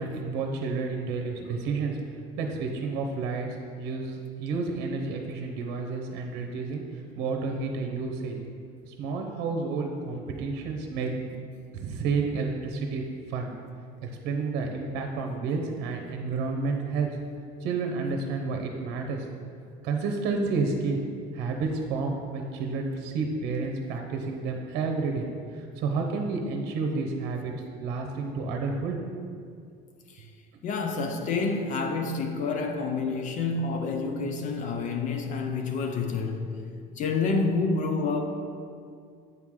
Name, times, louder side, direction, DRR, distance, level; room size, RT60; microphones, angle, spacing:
voice 1, 0.0-2.0 2.4-3.5 3.8-8.4 8.8-11.3 11.7-13.0 13.3-13.5 14.0-17.1 17.6-19.3 19.8-21.0 21.3-27.5 27.8-29.4, right 4 dB, 75° right, 0.8 m, -30 dB
voice 2, 30.6-36.5 37.0-38.2, left 4 dB, 45° left, 0.5 m, -28 dB
8.0 x 4.7 x 3.7 m
cardioid pair, 135°, 18 cm